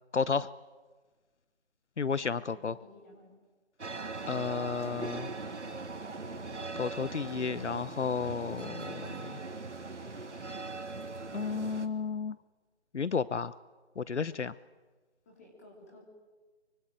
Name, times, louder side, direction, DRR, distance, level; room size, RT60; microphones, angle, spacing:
voice 1, 0.1-0.5 2.0-2.7 4.3-5.3 6.7-9.4 11.3-12.4 12.9-13.5 14.0-14.5, left 5 dB, 75° left, 18 dB, 0.9 m, -32 dB
voice 2, 2.2-3.4 15.2-16.0, left 1 dB, 15° left, -2 dB, 3.5 m, -55 dB
sound 1, 3.8-11.9, right 3 dB, 75° right, 3.0 m, -40 dB
24.0 x 24.0 x 9.1 m, 1.3 s
figure-of-eight pair, 180°, 35 cm